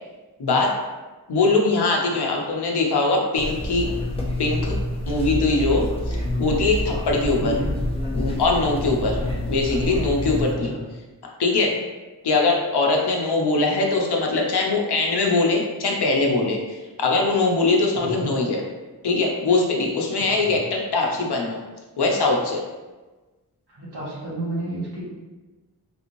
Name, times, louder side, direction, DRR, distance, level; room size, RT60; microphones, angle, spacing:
voice 1, 0.4-0.8 1.3-3.9 4.4-4.7 5.1-7.5 8.1-9.2 9.5-10.7 11.4-11.7 12.2-18.6 19.0-21.6 22.0-22.6, left 3 dB, 80° left, 0 dB, 0.7 m, -22 dB
sound 1, 3.4-10.5, left 1 dB, 15° left, 0.5 m, -27 dB
voice 2, 7.4-7.8 9.1-9.3 10.7-10.8 18.0-18.3 20.4-20.5 23.8-25.0, right 1 dB, 85° right, -8 dB, 1.2 m, -31 dB
3.4 x 3.0 x 2.6 m, 1.2 s
wide cardioid pair, 75°, 39 cm